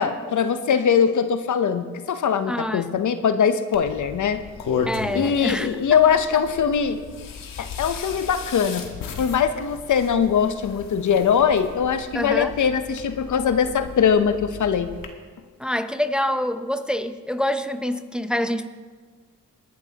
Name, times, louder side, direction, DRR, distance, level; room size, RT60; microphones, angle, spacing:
voice 1, 0.0-4.4 5.1-7.0 7.6-8.8 9.2-14.9, left 7 dB, 65° left, 10 dB, 0.9 m, -21 dB
voice 2, 2.5-2.9 4.9-5.8 12.1-12.5 15.6-18.7, left 1 dB, 5° right, 9 dB, 0.7 m, -26 dB
sound 1, 3.7-15.1, left 6 dB, 80° left, 1.6 m, -35 dB
20.5 x 11.5 x 2.9 m, 1.5 s
cardioid pair, 65°, 33 cm